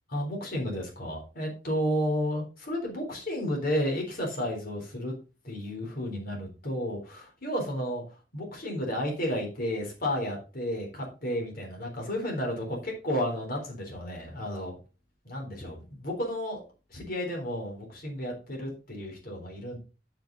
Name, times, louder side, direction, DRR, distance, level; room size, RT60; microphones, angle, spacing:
voice 1, 0.1-5.1 5.4-8.0 8.3-14.8 15.2-16.6 16.9-19.8, equal, 55° left, 1 dB, 3.9 m, -32 dB
7.8 x 7.3 x 4.0 m, 0.33 s
head